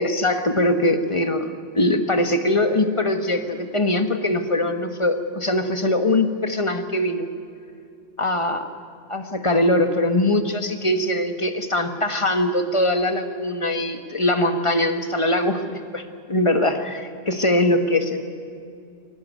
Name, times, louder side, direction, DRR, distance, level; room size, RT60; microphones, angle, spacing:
voice 1, 0.0-7.3 8.2-8.7 9.1-16.0 16.3-18.3, left 1 dB, 20° left, 7 dB, 1.2 m, -22 dB
22.0 x 18.0 x 9.4 m, 2.5 s
omnidirectional pair, 2.0 m